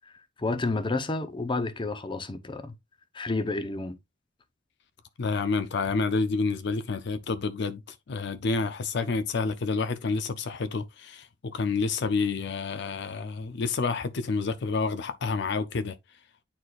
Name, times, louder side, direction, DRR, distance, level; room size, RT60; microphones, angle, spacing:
voice 1, 0.4-2.7 3.1-4.0, left 2 dB, 25° left, 0.7 m, -30 dB
voice 2, 5.2-7.8 8.1-15.9, left 4 dB, 65° left, 0.5 m, -29 dB
9.4 x 4.3 x 2.4 m
head